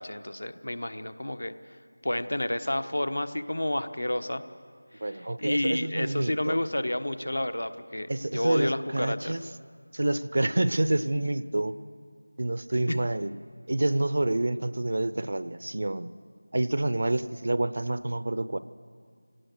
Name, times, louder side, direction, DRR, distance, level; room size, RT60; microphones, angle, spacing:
voice 1, 0.0-1.5 2.0-4.4 5.0-9.4 12.9-13.0, left 1 dB, 65° left, 11 dB, 1.1 m, -30 dB
voice 2, 5.0-6.6 8.1-9.4 9.9-11.7 12.4-13.3 13.7-16.1 16.5-18.6, right 1 dB, 50° right, 15 dB, 0.6 m, -28 dB
27.0 x 18.0 x 6.5 m, 2.1 s
figure-of-eight pair, 170°, 0 cm